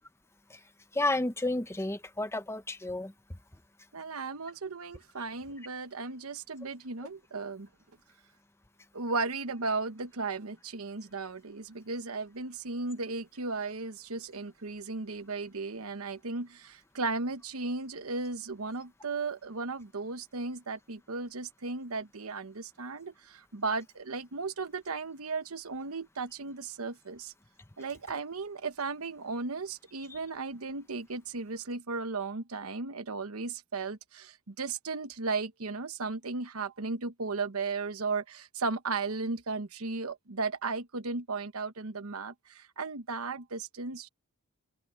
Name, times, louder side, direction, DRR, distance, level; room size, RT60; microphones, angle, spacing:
voice 1, 0.9-3.1, left 2 dB, 10° left, 0.9 m, -31 dB
voice 2, 3.9-7.7 8.9-27.3 27.8-44.1, right 3 dB, 80° right, 1.1 m, -35 dB
open air
head